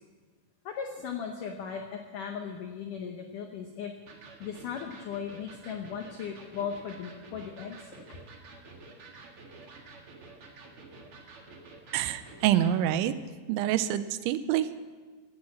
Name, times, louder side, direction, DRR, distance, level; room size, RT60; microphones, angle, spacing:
voice 1, 0.7-3.9 4.4-8.0, left 7 dB, 90° left, 3 dB, 1.8 m, -37 dB
Electric guitar, 4.1-12.8, right 3 dB, 50° right, 1.7 m, -50 dB
voice 2, 11.9-13.1 13.5-14.7, right 11 dB, 90° right, 13 dB, 3.1 m, -26 dB
16.0 x 9.7 x 7.5 m, 1.4 s
omnidirectional pair, 5.2 m